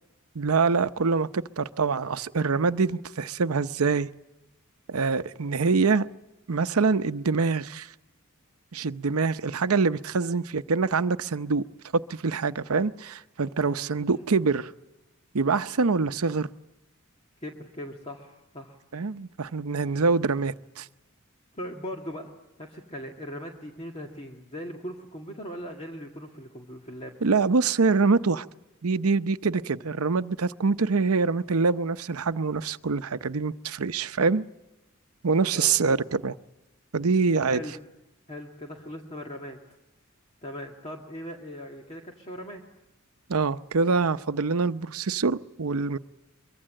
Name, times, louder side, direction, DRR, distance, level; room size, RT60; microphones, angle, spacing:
voice 1, 0.3-4.1 4.9-6.1 6.5-7.9 8.7-11.6 11.9-14.7 15.3-16.5 18.9-20.9 27.2-28.5 28.8-34.5 35.2-36.3 36.9-37.6 43.3-46.0, right 4 dB, 85° right, 0.7 m, -25 dB
voice 2, 13.6-14.2 17.4-18.8 21.5-22.3 22.6-27.2 35.5-36.0 37.5-37.7 38.3-39.6 40.4-42.6, equal, 30° left, 2.1 m, -39 dB
24.0 x 23.5 x 7.6 m
head